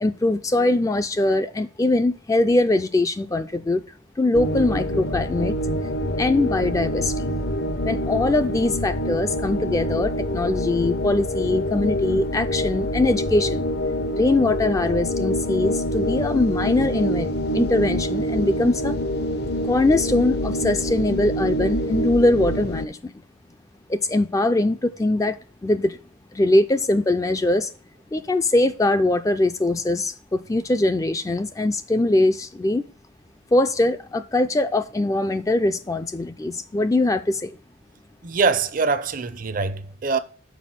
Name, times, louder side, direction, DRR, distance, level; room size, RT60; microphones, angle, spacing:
voice 1, 0.0-3.8 4.2-5.6 6.2-7.3 7.8-13.7 14.1-19.0 19.6-23.1 23.9-25.4 25.6-26.0 26.3-27.7 28.1-32.9 33.5-37.5, left 2 dB, 15° left, 0.3 m, -22 dB
sound 1, 4.3-22.9, equal, 55° left, 0.6 m, -26 dB
voice 2, 38.2-40.2, right 4 dB, 45° right, 0.5 m, -23 dB
6.1 x 4.9 x 5.7 m
head